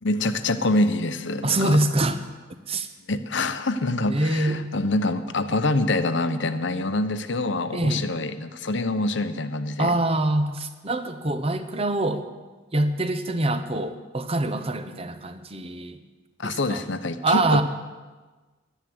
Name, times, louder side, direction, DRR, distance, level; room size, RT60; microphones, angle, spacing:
voice 1, 0.0-1.8 3.1-10.0 16.4-17.6, left 2 dB, 60° left, 10 dB, 0.9 m, -25 dB
voice 2, 1.4-2.2 2.7-2.9 4.1-4.7 7.7-8.1 9.8-12.3 12.7-16.0 16.4-16.8 17.2-17.6, right 2 dB, 30° right, 10 dB, 0.9 m, -24 dB
12.0 x 11.0 x 7.9 m, 1.3 s
head